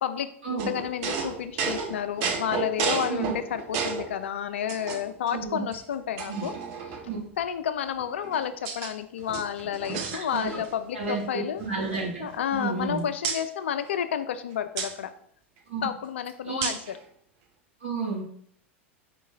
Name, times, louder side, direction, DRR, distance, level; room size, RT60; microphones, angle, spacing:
voice 1, 0.0-6.5 7.4-11.6 12.2-15.1 15.8-16.8, left 9 dB, 65° left, 10 dB, 0.3 m, -31 dB
sound 1, 0.6-4.2 4.7-5.3 5.7-5.8 6.2-7.2 8.0-8.9 9.2-10.8 11.0-11.3 11.6-12.9 13.2-13.4 14.8-14.9 16.6-16.9, right 5 dB, 50° right, 0.5 m, -32 dB
voice 2, 10.3-10.6 10.9-13.0 15.7-15.8 16.4-16.7 17.8-18.3, right 4 dB, 70° right, -2 dB, 1.5 m, -32 dB
4.4 x 3.0 x 3.4 m, 0.64 s
figure-of-eight pair, 85°, 7 cm